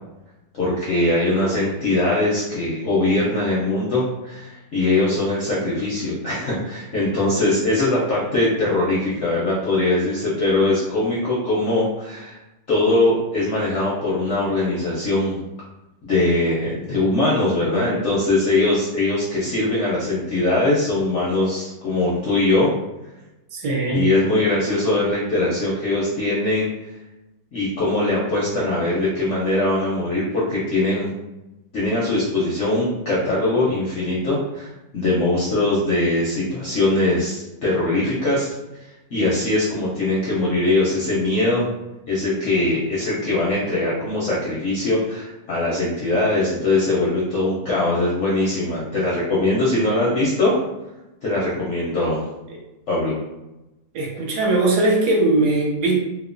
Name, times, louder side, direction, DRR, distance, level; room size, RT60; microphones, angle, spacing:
voice 1, 0.5-12.4 12.7-15.4 16.0-22.7 23.9-26.7 27.5-31.1 31.7-38.5 39.1-41.7 42.1-50.6 51.2-52.3 52.9-53.2, left 2 dB, 70° left, -7 dB, 0.7 m, -21 dB
voice 2, 23.5-24.1 53.9-56.0, right 2 dB, 75° right, -2 dB, 1.1 m, -20 dB
2.9 x 2.0 x 2.5 m, 0.98 s
omnidirectional pair, 1.9 m